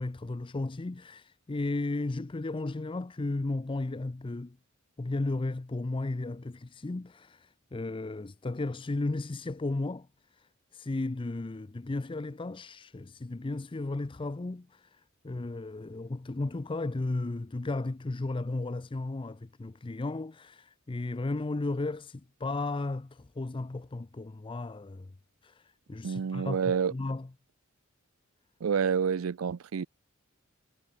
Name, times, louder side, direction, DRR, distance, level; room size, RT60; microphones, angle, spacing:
voice 1, 0.0-4.6 5.0-25.1 25.4-27.3, left 2 dB, 25° left, 0.5 m, -34 dB
voice 2, 26.0-26.9 28.6-29.9, right 6 dB, 80° right, 0.5 m, -28 dB
head